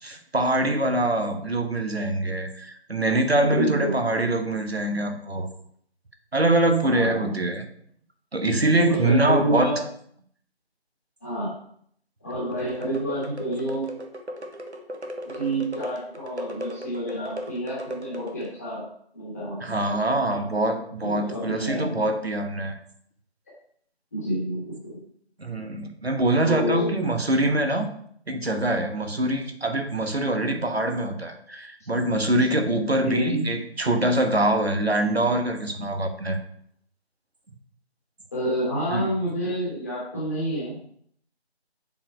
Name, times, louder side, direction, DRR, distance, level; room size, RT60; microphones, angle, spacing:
voice 1, 0.0-5.5 6.3-7.7 8.3-9.7 19.6-22.8 25.4-27.9 28.3-36.4 38.9-39.0, right 1 dB, 70° right, 6 dB, 1.2 m, -24 dB
voice 2, 3.4-4.0 6.8-7.4 8.9-9.8 11.2-11.5 12.2-13.9 15.2-18.9 19.1-20.4 21.0-21.9 24.1-25.0 26.4-26.9 33.0-33.5 38.3-40.7, equal, 15° left, -7 dB, 1.5 m, -28 dB
sound 1, 12.5-18.6, equal, 90° right, 1.2 m, -37 dB
7.5 x 4.5 x 4.5 m, 0.64 s
figure-of-eight pair, 160°, 33 cm